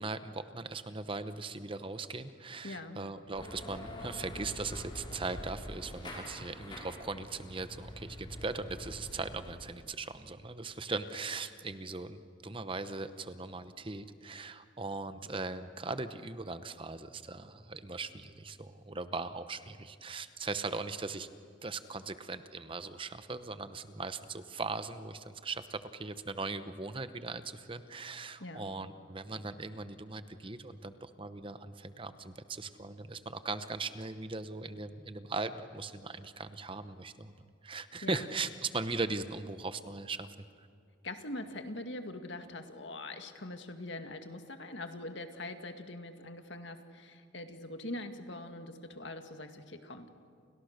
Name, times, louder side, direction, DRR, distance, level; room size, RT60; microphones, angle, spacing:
voice 1, 0.0-21.3 21.6-40.7, right 3 dB, 25° right, 11 dB, 0.9 m, -39 dB
voice 2, 2.6-3.0 28.4-28.6 38.0-38.3 41.0-50.1, left 2 dB, 60° left, 6 dB, 2.0 m, -43 dB
sound 1, 3.3-9.5, left 1 dB, 25° left, 5.8 m, -45 dB
30.0 x 29.5 x 6.7 m, 2.3 s
head